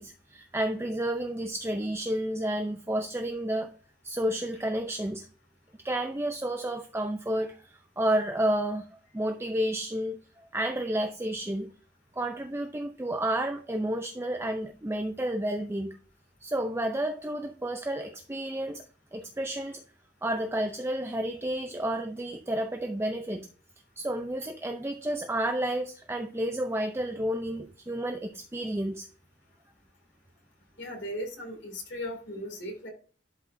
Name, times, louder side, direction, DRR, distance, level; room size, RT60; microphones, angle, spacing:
voice 1, 0.0-3.7 4.0-5.3 5.8-8.9 9.1-11.7 12.1-16.0 16.4-18.8 19.1-19.8 20.2-23.5 24.0-29.1, right 1 dB, 15° right, 4 dB, 0.5 m, -31 dB
voice 2, 30.8-32.9, equal, 75° left, 2 dB, 2.8 m, -37 dB
11.5 x 4.8 x 2.7 m, 0.40 s
head